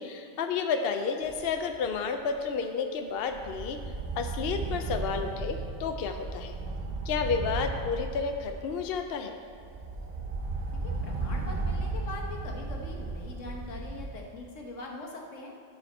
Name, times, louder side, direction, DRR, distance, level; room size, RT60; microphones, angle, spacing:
voice 1, 0.0-3.8 4.2-6.6 7.1-9.4, left 5 dB, 60° left, 5 dB, 0.7 m, -31 dB
sound 1, 1.2-2.0 2.3-2.5 3.3-9.1 9.5-14.1, right 3 dB, 40° right, 0.8 m, -35 dB
voice 2, 10.8-15.5, left 2 dB, 80° left, 0 dB, 1.5 m, -42 dB
14.0 x 4.9 x 4.2 m, 2.3 s
omnidirectional pair, 1.3 m